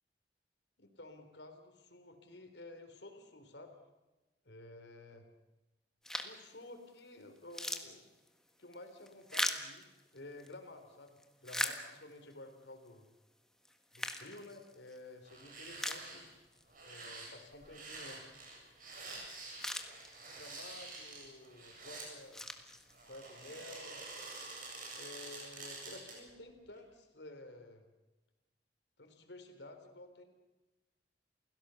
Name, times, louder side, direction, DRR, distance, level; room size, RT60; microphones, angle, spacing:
voice 1, 0.8-3.7 4.4-5.3 6.2-8.1 8.6-9.9 10.1-13.1 13.9-16.3 16.8-18.3 20.3-22.5 23.1-24.0 24.9-27.8 29.0-30.2, left 2 dB, 90° left, 6 dB, 3.8 m, -52 dB
sound 1, 6.0-6.5 7.0-7.1 7.4-10.5 11.1-12.3 12.9-13.0 13.7-15.0 15.4-15.5 15.8-16.6 17.0-17.1 19.1-19.2 19.4-20.5 21.1-21.5 22.0-23.3, left 1 dB, 5° left, 1.6 m, -40 dB
sound 2, 15.2-16.3 16.7-22.1 22.9-26.3 26.7-26.8, right 3 dB, 50° right, 7.8 m, -48 dB
29.5 x 16.5 x 7.1 m, 1.1 s
head